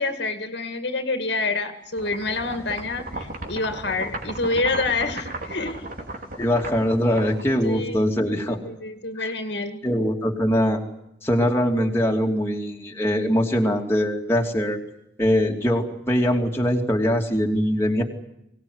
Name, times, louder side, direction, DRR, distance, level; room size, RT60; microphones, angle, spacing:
voice 1, 0.0-5.9 7.5-8.1 8.4-9.8, left 3 dB, 60° left, 8 dB, 2.2 m, -27 dB
sound 1, 2.0-8.1, right 2 dB, 45° right, 3.7 m, -35 dB
voice 2, 6.4-8.6 9.2-9.3 9.8-10.8 11.2-14.8 15.2-18.0, equal, 15° left, 0 dB, 2.8 m, -22 dB
24.0 x 18.5 x 9.7 m, 0.81 s
head